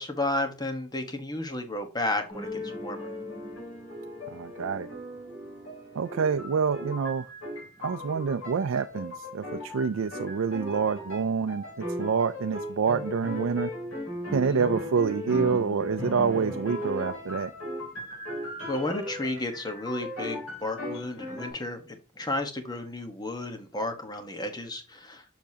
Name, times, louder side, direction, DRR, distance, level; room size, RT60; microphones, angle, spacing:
voice 1, 0.0-3.1 14.4-14.6 18.6-25.2, left 2 dB, 20° left, 1.2 m, -33 dB
sound 1, 2.3-21.5, left 1 dB, 85° left, 4.0 m, -37 dB
voice 2, 4.3-4.9 5.9-7.3 7.8-13.7 14.3-17.5, right 6 dB, 80° right, 0.4 m, -27 dB
6.9 x 6.2 x 2.8 m
head